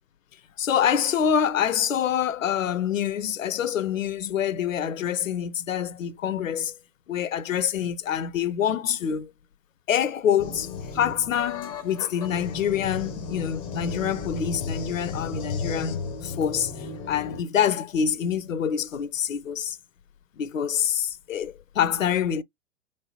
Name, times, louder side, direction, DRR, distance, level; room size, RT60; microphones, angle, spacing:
voice 1, 0.6-6.7 7.1-9.3 9.9-16.7 17.1-19.8 20.4-22.4, left 8 dB, 80° left, 0.5 m, -26 dB
sound 1, 10.4-17.4, left 4 dB, 15° left, 0.5 m, -34 dB
3.2 x 3.2 x 2.2 m
figure-of-eight pair, 115°, 38 cm